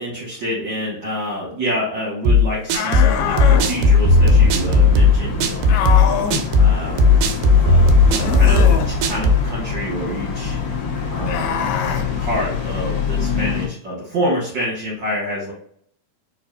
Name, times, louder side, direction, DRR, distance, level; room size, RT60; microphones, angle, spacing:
voice 1, 0.0-5.9 6.6-7.0 7.6-8.0 8.3-10.6 11.1-11.6 12.2-15.5, equal, 60° right, -6 dB, 1.1 m, -27 dB
sound 1, 2.3-9.5, left 3 dB, 90° right, 2.2 m, -14 dB
sound 2, 2.7-3.7 5.7-6.4 8.1-8.9 11.2-12.1, left 7 dB, 85° left, 2.2 m, -24 dB
sound 3, 3.0-13.7, left 6 dB, 70° left, 1.5 m, -26 dB
5.2 x 2.4 x 2.4 m, 0.63 s
omnidirectional pair, 3.8 m